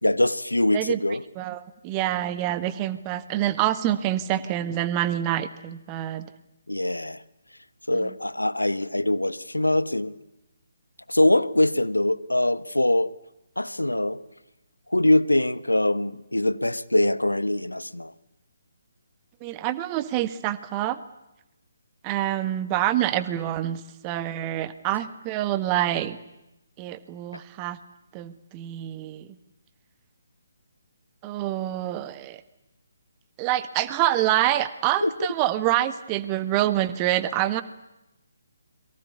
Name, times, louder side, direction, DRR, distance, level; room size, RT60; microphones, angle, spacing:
voice 1, 0.0-1.2 6.7-7.2 7.9-10.1 11.1-13.1 13.6-14.2 14.9-18.1 27.3-27.4 35.0-35.1, left 1 dB, 80° left, 1.4 m, -23 dB
voice 2, 0.7-6.3 7.9-8.1 19.4-21.0 22.0-26.2 26.8-27.8 28.1-29.3 31.2-32.4 33.4-37.6, right 13 dB, 20° right, 1.6 m, -26 dB
29.5 x 23.0 x 8.3 m
figure-of-eight pair, 140°, 0 cm